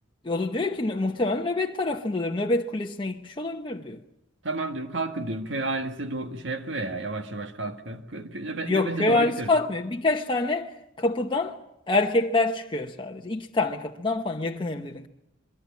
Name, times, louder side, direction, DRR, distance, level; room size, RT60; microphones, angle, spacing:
voice 1, 0.2-4.0 8.7-10.7 11.0-11.6 11.9-15.1, left 2 dB, 25° left, 0.9 m, -26 dB
voice 2, 4.4-9.5, right 2 dB, 70° right, 1.8 m, -31 dB
26.0 x 22.5 x 7.3 m
head